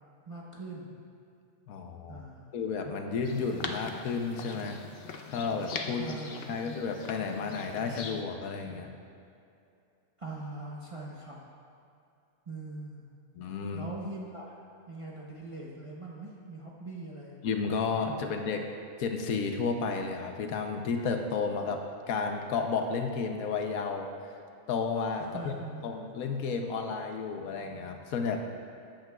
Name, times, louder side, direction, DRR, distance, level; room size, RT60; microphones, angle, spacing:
voice 1, 0.3-1.0 2.1-2.6 3.6-3.8 5.9-6.7 10.2-11.4 12.5-13.1 13.7-14.6 14.9-17.4 18.2-18.3 25.2-25.9, right 2 dB, 30° right, -4 dB, 0.7 m, -42 dB
voice 2, 1.7-2.2 2.5-4.8 5.3-6.2 6.5-9.0 13.4-13.9 17.4-18.6 19.0-24.1 24.7-25.5 25.8-28.4, left 5 dB, 75° left, 4 dB, 1.1 m, -32 dB
sound 1, 3.2-8.2, left 5 dB, 60° left, 0.6 m, -41 dB
13.5 x 8.9 x 2.3 m, 2.6 s
omnidirectional pair, 1.5 m